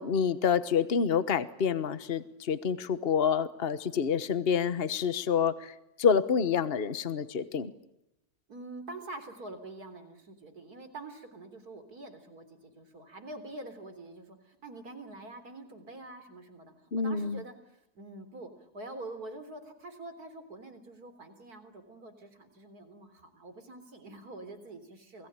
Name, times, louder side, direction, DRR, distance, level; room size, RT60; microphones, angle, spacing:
voice 1, 0.0-5.7 6.0-7.7 16.9-17.4, left 7 dB, 40° left, 13 dB, 1.3 m, -28 dB
voice 2, 8.5-25.3, right 2 dB, 90° right, 10 dB, 4.1 m, -46 dB
29.0 x 20.5 x 8.9 m, 0.86 s
omnidirectional pair, 1.6 m